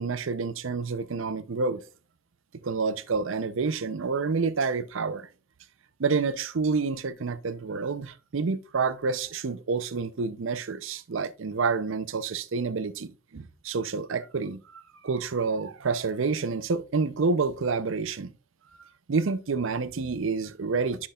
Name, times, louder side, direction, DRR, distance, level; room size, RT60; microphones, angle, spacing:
voice 1, 0.0-1.8 2.6-5.3 6.0-18.3 19.1-21.1, right 4 dB, 70° right, 0.6 m, -28 dB
10.0 x 6.0 x 2.3 m
head